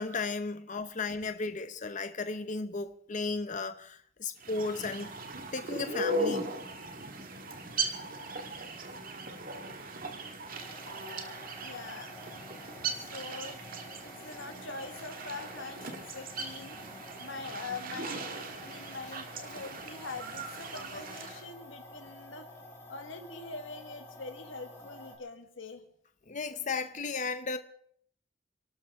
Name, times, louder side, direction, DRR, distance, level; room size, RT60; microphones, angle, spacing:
voice 1, 0.0-5.1 5.5-6.5 26.3-27.6, left 4 dB, 40° left, 0.9 m, -35 dB
sound 1, 4.4-21.4, right 2 dB, 50° right, 1.9 m, -38 dB
sound 2, 10.5-25.2, left 1 dB, 15° left, 3.6 m, -50 dB
voice 2, 11.6-12.2 12.8-13.6 14.0-16.8 17.2-22.5 22.9-25.8, left 3 dB, 85° left, 1.6 m, -43 dB
28.5 x 12.5 x 3.7 m
head